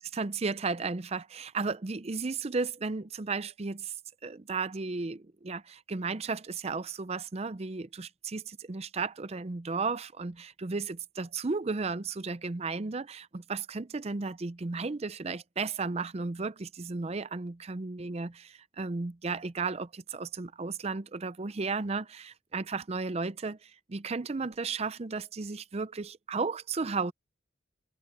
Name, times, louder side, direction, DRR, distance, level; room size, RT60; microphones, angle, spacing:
voice 1, 0.1-3.9 4.2-27.1, right 4 dB, 30° right, 0.5 m, -34 dB
head